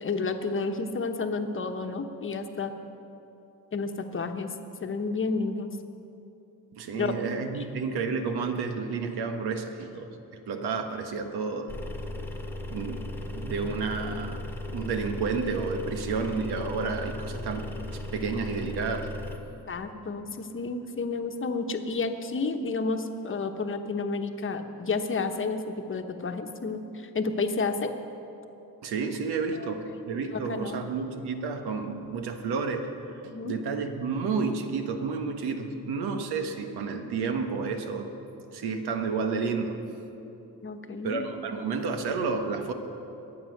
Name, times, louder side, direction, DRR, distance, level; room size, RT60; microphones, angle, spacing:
voice 1, 0.0-2.7 3.7-4.5 4.8-5.7 6.9-7.2 19.7-27.9 29.6-29.7 30.5-30.8 33.3-33.5 40.6-41.2, left 4 dB, 30° left, 6 dB, 1.1 m, -31 dB
voice 2, 6.7-10.1 10.5-11.7 12.7-13.0 13.3-14.4 14.7-19.1 28.8-32.9 33.2-38.1 38.5-39.8 41.0-42.7, right 4 dB, 85° right, 5 dB, 1.5 m, -31 dB
sound 1, 11.7-19.4, left 1 dB, 5° left, 1.4 m, -37 dB
22.5 x 8.6 x 6.6 m, 3.0 s
cardioid pair, 115°, 38 cm